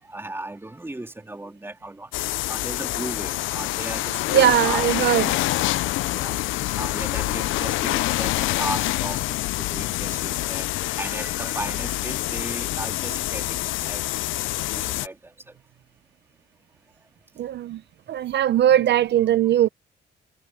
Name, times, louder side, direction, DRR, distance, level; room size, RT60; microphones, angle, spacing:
voice 1, 0.0-2.1 2.5-5.1 6.1-6.5 6.7-14.0 14.7-15.6 18.9-19.0 19.4-19.5, right 2 dB, 10° right, 3.1 m, -36 dB
sound 1, 2.1-15.1, left 17 dB, 80° left, 0.4 m, -26 dB
voice 2, 4.3-5.3 17.4-17.8 18.1-19.7, right 11 dB, 60° right, 0.6 m, -19 dB
cardioid pair, 90°, 20 cm